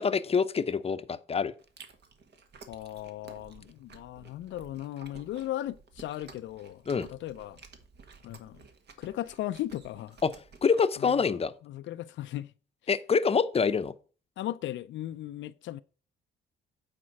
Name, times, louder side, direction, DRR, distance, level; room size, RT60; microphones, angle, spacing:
voice 1, 0.0-1.5 6.9-7.1 10.2-10.3 10.6-11.5 12.9-13.9, left 5 dB, 30° left, 0.7 m, -26 dB
Chewing mastication, 1.6-10.8, right 4 dB, 60° right, 1.5 m, -54 dB
voice 2, 2.7-7.6 8.2-8.6 9.0-10.2 11.0-12.5 14.4-15.8, left 13 dB, 70° left, 0.4 m, -37 dB
8.7 x 4.3 x 5.8 m
cardioid pair, 90°, 20 cm